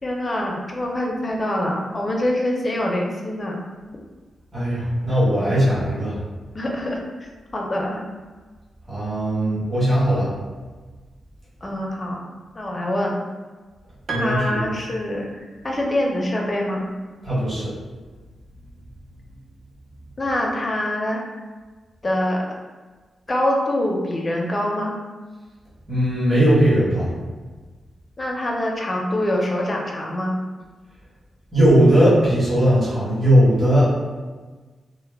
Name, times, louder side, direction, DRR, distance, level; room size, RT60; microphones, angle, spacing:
voice 1, 0.0-3.6 6.5-7.0 7.5-8.0 11.6-12.2 12.6-13.2 14.1-16.9 20.2-21.2 22.0-22.5 23.3-24.9 28.2-30.3, left 1 dB, 25° left, -1 dB, 0.4 m, -24 dB
voice 2, 4.5-6.2 8.9-10.3 14.1-14.6 17.2-17.7 25.9-27.1 31.5-34.0, equal, 25° right, -10 dB, 1.1 m, -18 dB
Piano, 14.1-15.8, right 4 dB, 55° right, 0.3 m, -34 dB
2.2 x 2.1 x 3.3 m, 1.3 s
wide cardioid pair, 130°, 0 cm